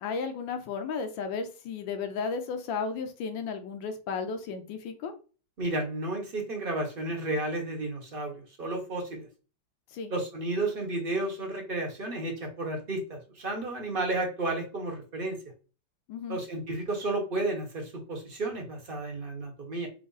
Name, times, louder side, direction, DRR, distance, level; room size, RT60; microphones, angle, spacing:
voice 1, 0.0-5.1 9.9-10.1 16.1-16.4, left 5 dB, 85° left, 7 dB, 1.5 m, -34 dB
voice 2, 5.6-8.3 8.6-9.3 10.1-15.4 16.3-19.9, right 2 dB, 35° right, 1 dB, 1.0 m, -32 dB
5.0 x 2.0 x 3.9 m, 0.35 s
omnidirectional pair, 2.0 m